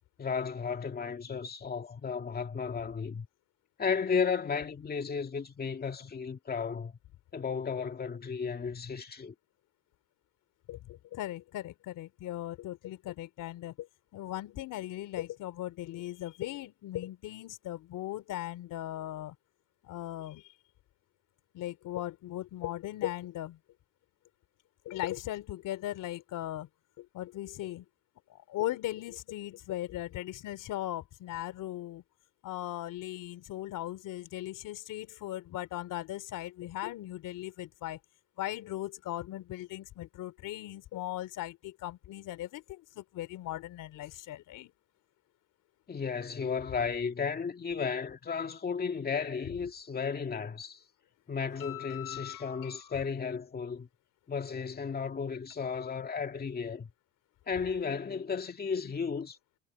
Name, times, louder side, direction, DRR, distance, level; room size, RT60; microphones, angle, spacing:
voice 1, 0.2-3.3 3.8-6.9 7.3-9.3 45.9-50.8 51.3-53.9 54.3-56.9 57.5-59.4, left 6 dB, 25° left, 2.2 m, -34 dB
voice 2, 10.7-13.9 14.1-19.3 19.8-20.4 21.5-23.6 24.8-26.7 27.0-27.9 28.3-32.0 32.4-38.0 38.4-44.7 51.6-53.0, left 14 dB, 65° left, 3.4 m, -38 dB
cardioid pair, 110°, 34 cm